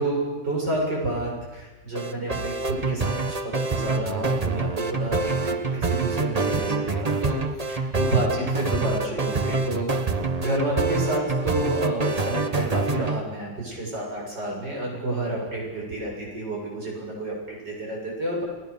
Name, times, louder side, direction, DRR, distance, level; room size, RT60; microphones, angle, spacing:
voice 1, 0.0-9.9 10.4-18.4, right 1 dB, 80° right, -2 dB, 8.1 m, -29 dB
sound 1, 2.0-13.2, right 3 dB, 25° right, 1.1 m, -26 dB
30.0 x 21.5 x 7.0 m, 1.2 s
omnidirectional pair, 1.9 m